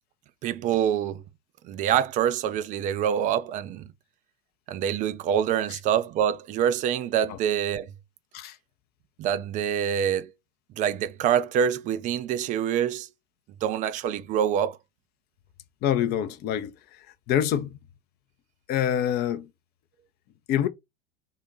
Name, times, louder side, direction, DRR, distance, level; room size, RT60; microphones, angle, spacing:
voice 1, 0.4-1.2 1.6-3.9 4.7-7.9 9.2-10.3 10.8-13.1 13.6-14.8, right 9 dB, 25° right, 0.4 m, -25 dB
voice 2, 15.8-17.8 18.7-19.5 20.5-20.7, left 10 dB, 35° left, 0.4 m, -26 dB
3.8 x 2.1 x 3.8 m
figure-of-eight pair, 80°, 30 cm